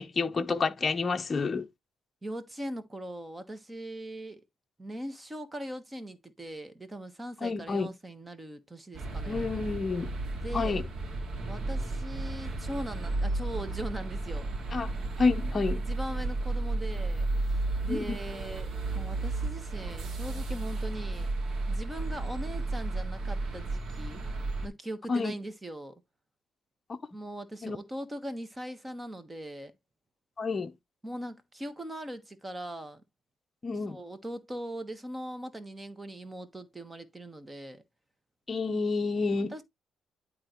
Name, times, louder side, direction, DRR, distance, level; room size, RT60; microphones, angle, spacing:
voice 1, 0.0-1.7 7.4-7.9 9.3-10.1 10.5-10.8 14.7-14.9 15.2-15.8 17.9-18.2 25.1-25.3 26.9-27.0 27.6-27.8 30.4-30.7 33.6-34.0 38.5-39.5, left 4 dB, 30° left, 0.7 m, -29 dB
voice 2, 2.2-4.4 4.8-9.5 10.4-10.9 11.5-14.5 15.7-17.3 17.8-21.3 21.7-24.3 24.6-25.9 27.1-29.7 31.0-33.0 33.9-37.8 39.5-39.6, right 1 dB, 20° right, 1.3 m, -40 dB
sound 1, 8.9-24.7, right 2 dB, 60° right, 2.2 m, -33 dB
11.0 x 3.8 x 3.0 m
cardioid pair, 90°, 0 cm